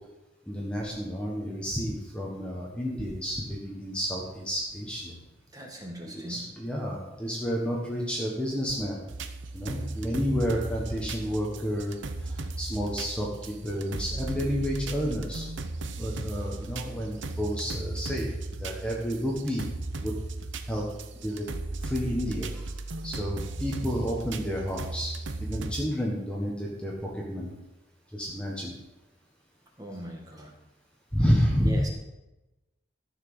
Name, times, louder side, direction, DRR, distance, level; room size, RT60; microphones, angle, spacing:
voice 1, 0.5-5.1 6.1-9.0 9.5-15.5 16.0-18.3 18.6-19.7 20.0-20.1 20.7-20.9 21.2-21.4 21.8-22.6 23.0-25.1 25.4-27.5 28.1-28.7 31.1-31.8, equal, 5° left, -3 dB, 1.4 m, -30 dB
voice 2, 5.5-6.4 9.8-9.9 29.8-30.5 31.6-31.9, right 1 dB, 20° right, 0 dB, 1.9 m, -39 dB
sound 1, 9.1-25.9, right 2 dB, 70° right, 0.8 m, -36 dB
13.5 x 6.0 x 6.2 m, 1.0 s
head